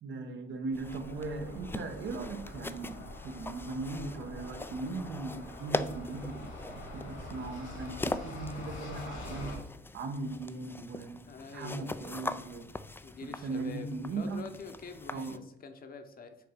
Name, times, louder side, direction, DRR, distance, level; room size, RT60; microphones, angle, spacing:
voice 1, 0.0-9.7 9.9-11.2 11.5-12.7 13.2-14.5 15.1-15.4, right 3 dB, 70° right, 5 dB, 1.0 m, -38 dB
sound 1, 0.7-15.4, left 2 dB, 10° left, 0.3 m, -42 dB
sound 2, 0.8-9.6, left 1 dB, 85° left, 2.7 m, -45 dB
voice 2, 11.3-12.2 13.0-16.4, left 4 dB, 45° left, 7 dB, 0.9 m, -46 dB
6.6 x 3.8 x 5.2 m, 0.81 s
cardioid pair, 90°, 20 cm